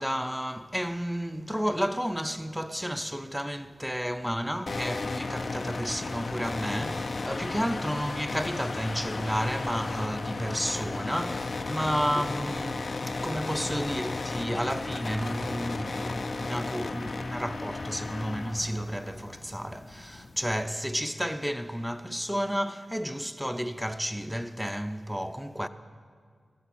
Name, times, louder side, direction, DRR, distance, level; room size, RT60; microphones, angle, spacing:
voice 1, 0.0-25.7, equal, ahead, 0.6 m, -32 dB
sound 1, 4.7-20.6, left 3 dB, 55° left, 0.5 m, -34 dB
13.0 x 13.0 x 4.3 m
cardioid pair, 50°, 0 cm